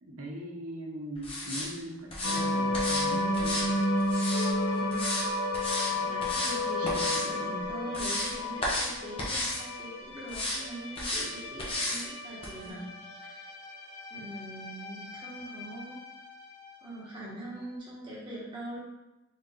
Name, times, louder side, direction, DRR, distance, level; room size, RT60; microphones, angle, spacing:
voice 1, 0.0-3.8, right 1 dB, 80° right, -1 dB, 0.8 m, -40 dB
sound 1, 1.2-1.7 2.1-2.4 2.7-3.1 3.3-4.5 4.9-5.3 5.5-5.9 6.2-6.6 6.8-7.2 7.7-8.3 8.6-8.9 9.2-9.6 10.3-10.6 10.9-11.3 11.6-12.0 12.4-12.5, left 1 dB, 25° left, 0.7 m, -32 dB
sound 2, 2.2-16.7, left 1 dB, 85° left, 0.8 m, -33 dB
voice 2, 4.7-5.2 6.0-12.9 13.2-13.5 14.1-16.0 16.8-18.8, right 1 dB, 20° right, -7 dB, 1.1 m, -42 dB
3.5 x 2.5 x 4.2 m, 0.98 s
head